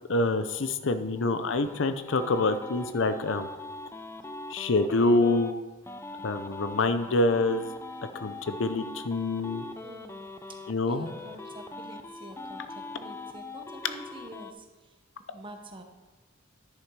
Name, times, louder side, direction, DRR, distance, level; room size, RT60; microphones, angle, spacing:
voice 1, 0.1-3.5 4.5-5.6 6.2-7.7 8.1-9.6 10.7-11.1, left 2 dB, 65° left, 10 dB, 0.6 m, -26 dB
sound 1, 1.2-5.5 5.9-10.7 11.0-14.5, left 2 dB, 15° left, 0.4 m, -42 dB
voice 2, 9.8-10.3 10.8-14.9 15.3-15.8, right 1 dB, 25° right, 4 dB, 1.1 m, -47 dB
10.0 x 6.8 x 4.7 m, 1.2 s
head